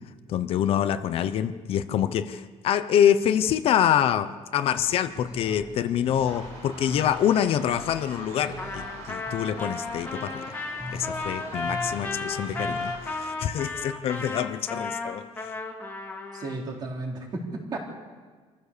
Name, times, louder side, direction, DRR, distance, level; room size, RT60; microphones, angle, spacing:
voice 1, 0.3-10.5 10.9-15.5, left 9 dB, 55° left, 11 dB, 0.8 m, -26 dB
sound 1, 4.7-13.0, left 1 dB, 10° right, 2.7 m, -41 dB
sound 2, 6.2-13.3, right 2 dB, 90° right, 6.9 m, -45 dB
Trumpet, 8.6-16.6, left 3 dB, 15° left, 2.5 m, -34 dB
voice 2, 16.3-17.8, right 2 dB, 35° right, 0 dB, 3.8 m, -33 dB
26.5 x 14.5 x 6.8 m, 1.5 s
cardioid pair, 170°, 12 cm